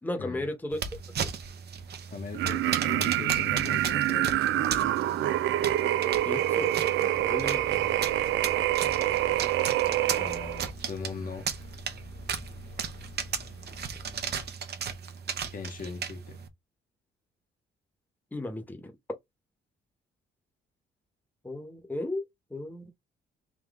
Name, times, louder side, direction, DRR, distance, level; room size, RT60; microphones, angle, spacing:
voice 1, 0.0-0.8 1.2-1.3 6.2-6.8 7.2-8.0 18.3-18.9 21.4-22.2 22.5-22.9, left 2 dB, 10° left, 1.1 m, -35 dB
sound 1, 0.7-16.5, right 7 dB, 55° right, 0.9 m, -36 dB
voice 2, 2.1-5.5 10.1-11.5 15.5-16.4, left 4 dB, 45° left, 1.1 m, -40 dB
sound 2, 2.3-10.7, right 13 dB, 75° right, 0.4 m, -26 dB
sound 3, 7.1-14.5, left 3 dB, 75° left, 1.2 m, -48 dB
3.8 x 2.9 x 3.5 m
cardioid pair, 90°, 20 cm